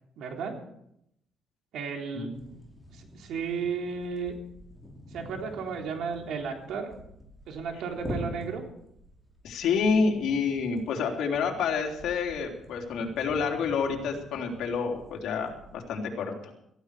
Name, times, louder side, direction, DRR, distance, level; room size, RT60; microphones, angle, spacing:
voice 1, 0.2-0.6 1.7-2.3 2.9-4.3 5.1-6.9 7.5-8.6, right 5 dB, 75° right, 2 dB, 3.5 m, -34 dB
sound 1, 2.3-15.8, equal, 5° right, 6.1 m, -45 dB
voice 2, 9.4-16.5, left 5 dB, 80° left, 1 dB, 3.5 m, -28 dB
18.0 x 15.0 x 5.0 m, 0.76 s
cardioid pair, 120°, 0 cm